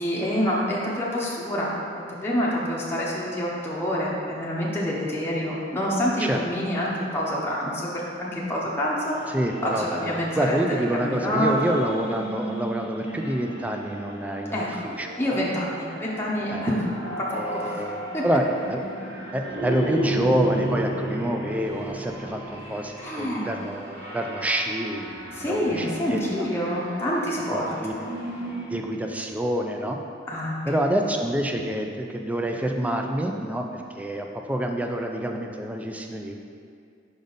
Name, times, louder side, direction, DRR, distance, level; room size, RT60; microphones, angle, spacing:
voice 1, 0.0-9.1 9.6-10.6 10.9-11.7 13.0-13.2 14.5-14.8 15.2-16.9 17.2-17.9 18.1-18.2 23.0-23.5 25.3-27.7 30.3-30.6, equal, 15° left, -6 dB, 0.7 m, -27 dB
sound 1, 9.0-28.8, right 1 dB, 60° right, 1.3 m, -34 dB
voice 2, 9.3-15.2 16.5-16.6 17.3-18.8 19.3-26.5 27.8-27.9 28.7-30.0 30.7-36.4, right 1 dB, 10° right, 3 dB, 0.3 m, -27 dB
5.2 x 5.1 x 3.9 m, 2.3 s
head